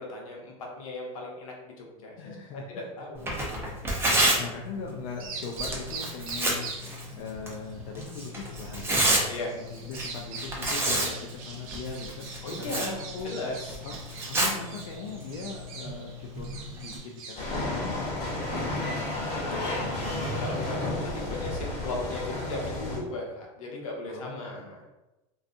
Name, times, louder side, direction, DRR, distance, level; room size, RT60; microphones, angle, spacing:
voice 1, 0.0-2.4 2.7-3.4 4.3-4.4 9.3-9.5 12.4-13.8 18.3-24.8, left 2 dB, 90° left, -1 dB, 0.7 m, -37 dB
voice 2, 2.2-2.8 4.0-9.3 9.7-13.3 13.8-14.0 14.2-18.6 24.1-24.7, left 5 dB, 60° left, 0 dB, 0.4 m, -40 dB
Tearing, 3.1-17.0, right 1 dB, 15° right, 0.6 m, -31 dB
Bird vocalization bird call bird song, 5.1-22.4, right 4 dB, 80° right, 0.5 m, -44 dB
sound 1, 17.4-23.0, left 2 dB, 40° left, 1.4 m, -32 dB
2.4 x 2.3 x 2.5 m, 1.0 s
supercardioid pair, 115°, 17 cm